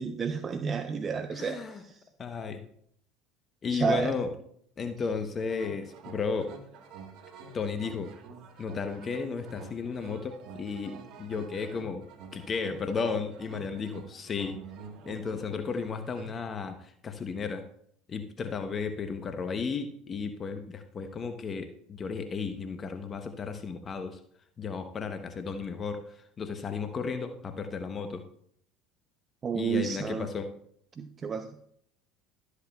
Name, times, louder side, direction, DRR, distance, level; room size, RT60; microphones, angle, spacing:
voice 1, 0.0-1.9 3.7-4.1 29.4-30.3 31.0-31.5, right 6 dB, 35° right, 8 dB, 0.6 m, -31 dB
voice 2, 1.3-1.8 2.2-2.6 3.6-4.3 4.8-6.5 7.5-8.1 8.6-12.0 12.3-14.6 15.1-17.6 18.1-24.2 24.6-26.0 26.4-28.2 29.5-30.5, left 5 dB, 35° left, 7 dB, 0.8 m, -34 dB
sound 1, 5.4-16.3, right 5 dB, 60° right, 1.4 m, -48 dB
12.5 x 8.1 x 2.3 m, 0.67 s
hypercardioid pair, 80°, 0 cm